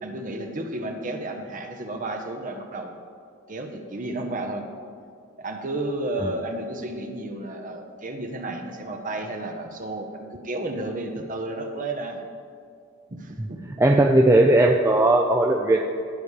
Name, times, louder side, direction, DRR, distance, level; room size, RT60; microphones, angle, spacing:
voice 1, 0.0-2.9 3.5-4.6 5.4-12.2 13.1-13.6 13.9-14.0, right 2 dB, 40° right, 4 dB, 0.9 m, -32 dB
voice 2, 13.8-15.8, right 1 dB, 15° right, 2 dB, 0.4 m, -17 dB
18.0 x 7.0 x 3.3 m, 2.3 s
head